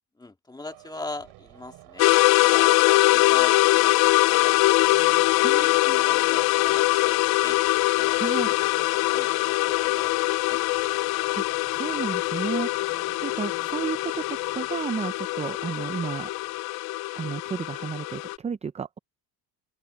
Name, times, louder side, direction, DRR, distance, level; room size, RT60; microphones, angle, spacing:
voice 1, 0.2-2.1 2.4-4.9 5.6-7.6 7.9-10.6 12.6-12.7, left 2 dB, 10° left, 1.9 m, -41 dB
sound 1, 0.7-16.6, right 20 dB, 90° right, 6.4 m, -55 dB
sound 2, 2.0-18.4, left 20 dB, 75° left, 0.6 m, -22 dB
sound 3, 4.3-14.7, left 7 dB, 30° left, 3.3 m, -48 dB
voice 2, 5.4-6.0 8.2-8.6 11.0-11.5 11.7-16.3 17.1-19.0, right 6 dB, 20° right, 0.5 m, -33 dB
open air
cardioid pair, 135°, 38 cm